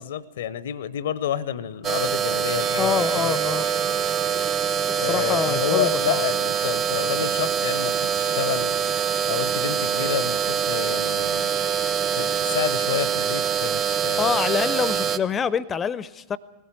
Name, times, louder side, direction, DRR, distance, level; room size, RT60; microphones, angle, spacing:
voice 1, 0.0-3.4 5.0-8.8 9.3-11.6 12.1-14.3, left 10 dB, 60° left, 18 dB, 0.8 m, -29 dB
sound 1, 1.8-15.2, right 8 dB, 30° right, 1.0 m, -24 dB
Musical instrument, 2.6-9.0 9.8-10.8, right 8 dB, 55° right, 2.2 m, -43 dB
voice 2, 2.8-3.7 4.9-6.2 14.2-16.4, left 7 dB, 20° left, 19 dB, 0.7 m, -26 dB
20.0 x 16.5 x 9.0 m, 1.2 s
figure-of-eight pair, 90°, 0 cm